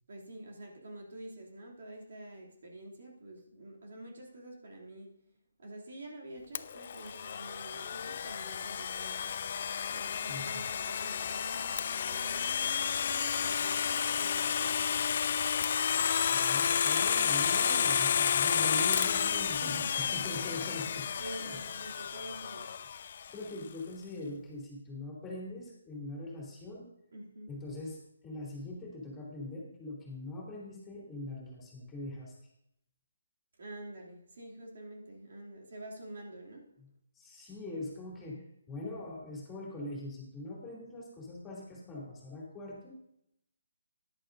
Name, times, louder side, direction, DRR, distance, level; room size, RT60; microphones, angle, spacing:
voice 1, 0.1-5.2 5.6-9.4 9.9-15.1 19.6-20.3 20.6-20.7 21.2-22.8 27.1-27.5 33.6-36.7, right 1 dB, 65° right, -1 dB, 2.8 m, -48 dB
Domestic sounds home sounds, 6.5-23.3, left 7 dB, 45° left, 0.4 m, -31 dB
voice 2, 10.3-10.7 16.3-21.6 23.3-26.9 27.5-32.3 36.8-36.9 37.2-38.4 38.7-43.0, left 2 dB, 10° left, -4 dB, 2.8 m, -42 dB
14.0 x 11.0 x 2.7 m, 0.76 s
hypercardioid pair, 160°, 0 cm